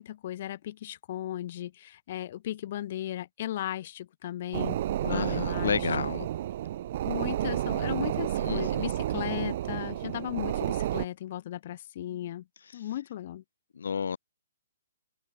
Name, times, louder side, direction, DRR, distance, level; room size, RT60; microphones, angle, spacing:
voice 1, 0.0-5.9 7.0-12.4 12.7-13.4, left 12 dB, 40° left, 6.8 m, -36 dB
sound 1, 4.5-11.1, right 12 dB, 40° right, 1.6 m, -31 dB
voice 2, 5.1-6.3 8.4-8.8 13.8-14.2, left 6 dB, 75° left, 5.6 m, -31 dB
hypercardioid pair, 165°, 0 cm